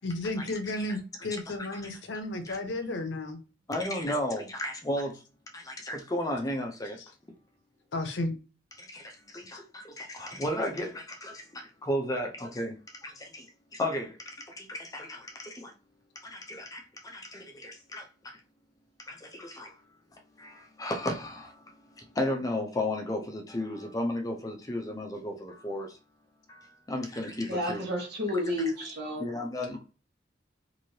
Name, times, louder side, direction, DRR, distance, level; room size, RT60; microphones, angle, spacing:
voice 1, 0.0-3.4 7.9-8.3, left 2 dB, 75° left, 0.7 m, -33 dB
voice 2, 3.7-5.2 5.5-7.0 8.8-12.7 13.0-13.5 13.7-15.7 16.2-18.4 19.1-19.7 20.4-21.6 22.0-26.0 26.5-27.8 29.2-29.8, left 1 dB, 20° left, 0.5 m, -34 dB
voice 3, 27.4-29.3, left 1 dB, 60° right, 1.2 m, -31 dB
3.1 x 2.6 x 2.7 m
head